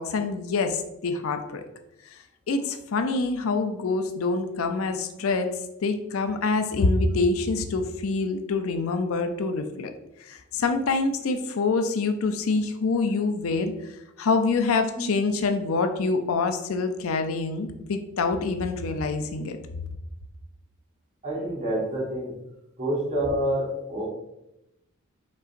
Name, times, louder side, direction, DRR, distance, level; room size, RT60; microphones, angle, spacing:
voice 1, 0.0-1.7 2.5-5.5 5.8-9.9 10.2-13.7 14.2-19.6, left 3 dB, 75° left, 7 dB, 0.5 m, -26 dB
voice 2, 21.2-22.3 22.8-24.1, right 1 dB, 35° right, -6 dB, 1.6 m, -27 dB
5.4 x 3.8 x 2.5 m, 0.88 s
head